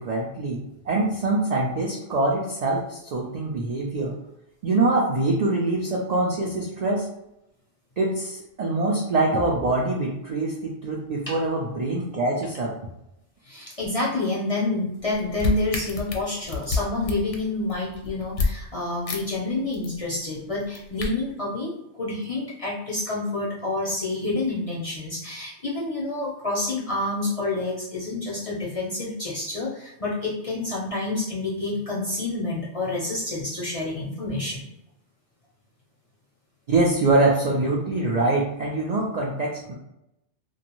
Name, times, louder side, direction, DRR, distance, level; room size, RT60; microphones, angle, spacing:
voice 1, 0.0-4.1 4.6-7.1 8.0-12.7 36.7-39.7, right 2 dB, 75° right, -2 dB, 0.3 m, -24 dB
voice 2, 13.5-21.7 22.0-34.6, left 2 dB, 45° left, -5 dB, 0.4 m, -28 dB
sound 1, 15.0-18.5 19.1-19.2 19.5-20.0 20.5-21.1, left 4 dB, 80° left, 0.9 m, -28 dB
2.5 x 2.2 x 2.9 m, 0.86 s
omnidirectional pair, 1.2 m